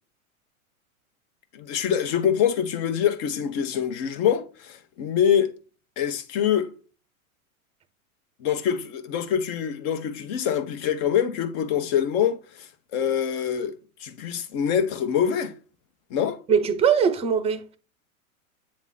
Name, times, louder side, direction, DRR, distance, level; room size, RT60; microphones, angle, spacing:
voice 1, 1.5-5.5 6.0-6.7 8.4-15.5 16.1-16.4, left 8 dB, 45° left, 1.1 m, -25 dB
voice 2, 16.5-17.8, right 7 dB, 15° right, 0.7 m, -21 dB
8.7 x 3.0 x 3.9 m
hypercardioid pair, 120°, 43 cm